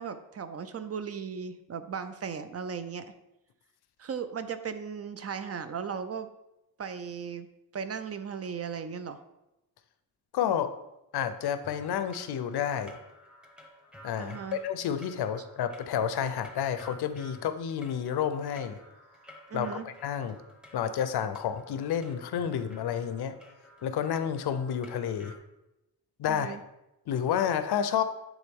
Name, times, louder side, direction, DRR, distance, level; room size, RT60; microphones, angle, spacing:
voice 1, 0.0-3.1 4.0-6.3 6.8-7.5 7.7-9.2 14.2-14.6 19.5-19.9 26.3-26.6, right 6 dB, 40° right, 10 dB, 0.4 m, -37 dB
voice 2, 10.3-10.7 11.1-13.0 14.0-18.8 19.5-20.4 20.7-23.4 23.8-25.3 26.2-26.6 27.1-28.0, left 8 dB, 75° left, 11 dB, 0.6 m, -30 dB
sound 1, 11.6-25.4, left 1 dB, ahead, 0.8 m, -53 dB
9.7 x 3.6 x 3.6 m, 0.93 s
wide cardioid pair, 140°, 40 cm